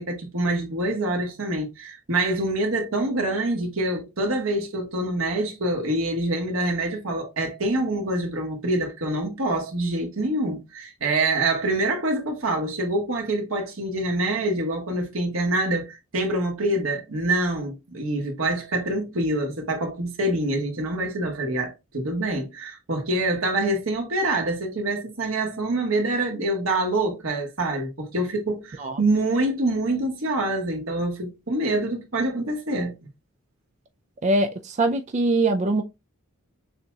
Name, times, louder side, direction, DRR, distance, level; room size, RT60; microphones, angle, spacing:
voice 1, 0.0-32.9, right 2 dB, 85° right, 1.3 m, -26 dB
voice 2, 34.2-35.8, right 2 dB, 35° right, 0.4 m, -22 dB
6.4 x 2.9 x 2.3 m
head